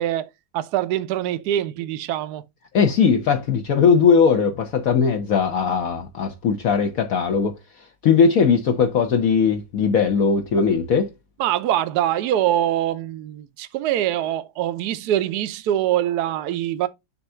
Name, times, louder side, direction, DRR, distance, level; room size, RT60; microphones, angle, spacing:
voice 1, 0.0-2.4 11.4-16.9, right 12 dB, 75° right, 1.2 m, -24 dB
voice 2, 2.7-7.5 8.0-11.1, left 6 dB, 60° left, 1.2 m, -19 dB
6.9 x 2.6 x 5.5 m
omnidirectional pair, 1.8 m